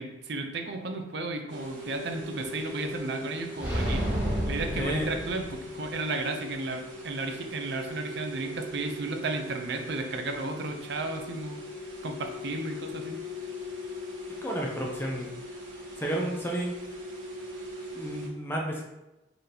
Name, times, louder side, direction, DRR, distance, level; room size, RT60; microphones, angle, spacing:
voice 1, 0.0-4.0 4.5-11.6 12.0-13.2, right 2 dB, 60° right, 5 dB, 0.5 m, -33 dB
sound 1, 1.5-18.3, left 1 dB, 90° right, 1.0 m, -40 dB
sound 2, 3.6-5.8, equal, 10° right, 0.9 m, -30 dB
voice 2, 4.7-5.1 14.4-15.3 16.0-16.7 17.9-18.8, right 1 dB, 10° left, -1 dB, 0.5 m, -31 dB
4.0 x 2.8 x 3.3 m, 1.0 s
head